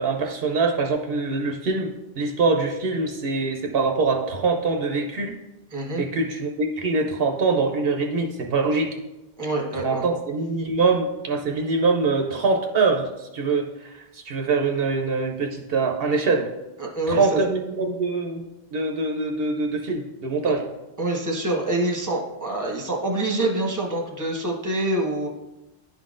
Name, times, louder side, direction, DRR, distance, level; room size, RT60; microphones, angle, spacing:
voice 1, 0.0-5.3 6.0-8.9 9.7-16.4 17.1-20.6, right 4 dB, 70° right, 2 dB, 0.8 m, -24 dB
voice 2, 5.7-6.0 9.4-10.0 16.8-17.4 20.4-20.5 21.0-25.3, right 2 dB, 20° right, -1 dB, 1.0 m, -26 dB
10.5 x 3.8 x 2.5 m, 0.99 s
omnidirectional pair, 1.0 m